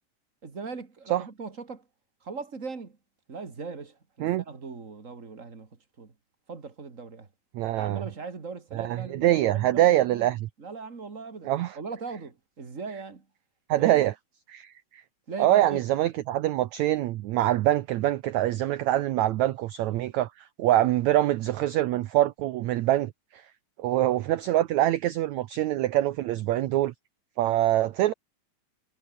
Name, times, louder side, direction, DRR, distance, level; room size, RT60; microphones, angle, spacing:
voice 1, 0.4-1.8 2.2-3.0 3.3-5.7 6.0-6.1 6.5-7.3 7.8-10.3 10.6-13.2 13.7-14.0 15.3-15.8, right 4 dB, 25° right, 2.2 m, -39 dB
voice 2, 7.5-8.0 8.7-10.5 11.4-11.8 13.7-14.1 14.5-15.0 15.4-20.3 20.6-23.4 23.8-26.9 27.4-28.1, right 14 dB, 80° right, 1.6 m, -24 dB
omnidirectional pair, 4.3 m